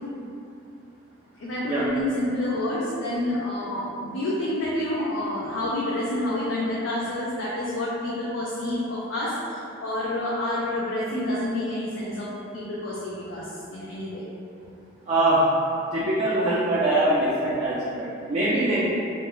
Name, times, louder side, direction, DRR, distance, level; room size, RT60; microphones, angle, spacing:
voice 1, 1.4-14.2, left 1 dB, 65° left, -7 dB, 0.4 m, -28 dB
voice 2, 15.1-15.4 15.9-18.9, right 2 dB, 30° right, -9 dB, 0.4 m, -23 dB
2.5 x 2.1 x 3.6 m, 2.7 s
head